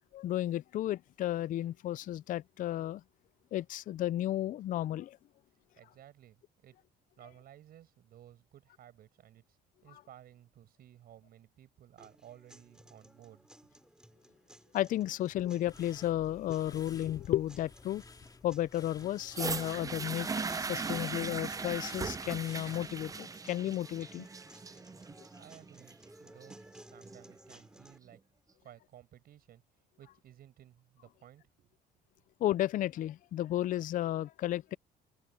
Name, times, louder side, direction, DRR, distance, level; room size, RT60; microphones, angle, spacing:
voice 1, 0.1-3.0 3.5-5.2 14.7-18.0 18.4-24.3 32.4-34.8, left 13 dB, 50° left, 0.4 m, -33 dB
voice 2, 5.8-6.8 7.2-9.6 9.8-13.8 24.9-26.6 26.9-28.2 28.6-31.8, right 11 dB, 60° right, 7.1 m, -57 dB
sound 1, 12.0-28.0, right 1 dB, 5° right, 5.5 m, -58 dB
sound 2, 15.7-23.2, left 4 dB, 20° left, 2.9 m, -54 dB
sound 3, 19.3-27.3 28.1-28.2, right 4 dB, 20° right, 0.6 m, -39 dB
cardioid pair, 110°, 17 cm